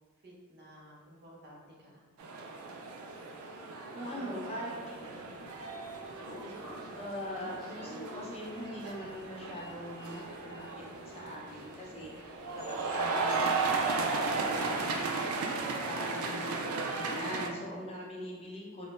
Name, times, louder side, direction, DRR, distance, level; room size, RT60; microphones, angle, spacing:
voice 1, 0.2-2.1 4.0-5.7, equal, 50° right, -4 dB, 0.7 m, -52 dB
sound 1, 2.2-17.5, right 3 dB, 85° right, 0.4 m, -35 dB
voice 2, 3.9-5.0 6.9-18.9, equal, 30° left, -5 dB, 0.6 m, -42 dB
Sliding door, 5.1-15.2, right 1 dB, ahead, 0.8 m, -51 dB
3.6 x 2.0 x 2.5 m, 1.5 s
head